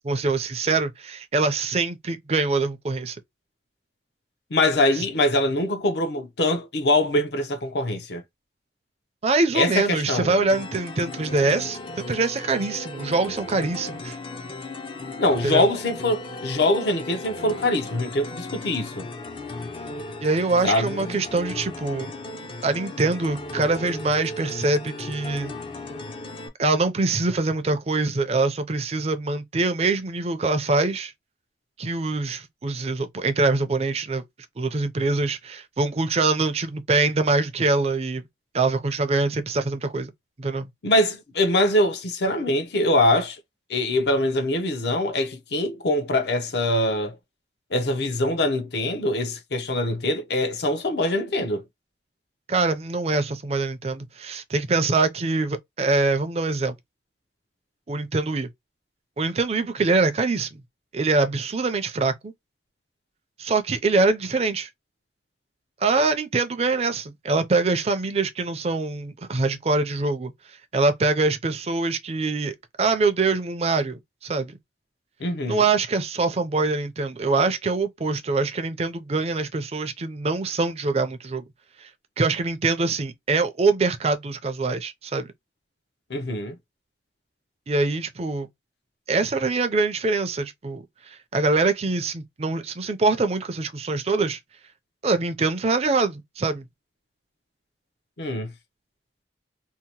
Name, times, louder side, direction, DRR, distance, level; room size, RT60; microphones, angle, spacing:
voice 1, 0.0-3.2 5.0-5.1 9.2-14.2 15.4-15.7 20.2-22.1 22.6-25.5 26.6-31.1 31.8-34.2 34.6-38.2 38.5-40.1 40.4-40.7 52.5-56.8 57.9-58.5 59.2-60.6 60.9-62.3 63.4-64.7 65.8-70.3 70.7-74.6 75.5-81.4 81.8-81.9 82.2-85.3 87.7-88.5 89.1-94.4 95.0-96.6, right 3 dB, 35° right, 0.4 m, -24 dB
voice 2, 4.5-8.2 9.5-10.5 15.2-19.1 20.6-21.2 40.8-43.4 43.7-47.2 47.7-51.6 75.2-75.7 86.1-86.5 98.2-98.5, left 1 dB, 65° left, 0.6 m, -23 dB
sound 1, 10.5-26.5, left 2 dB, 30° left, 0.4 m, -36 dB
2.8 x 2.0 x 2.8 m
head